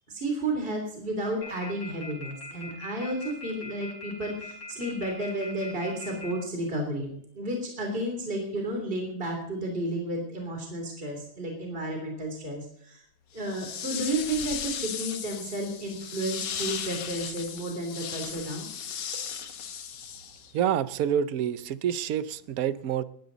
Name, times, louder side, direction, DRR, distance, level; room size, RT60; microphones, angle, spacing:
voice 1, 0.1-13.0 13.3-18.7, right 1 dB, 30° right, 2 dB, 3.6 m, -32 dB
sound 1, 1.4-6.3, left 3 dB, 40° left, 5.2 m, -41 dB
sound 2, 13.4-20.6, left 8 dB, 65° left, 1.8 m, -36 dB
voice 2, 20.5-23.0, right 9 dB, 60° right, 14 dB, 1.1 m, -27 dB
21.0 x 13.5 x 4.1 m, 0.68 s
omnidirectional pair, 2.1 m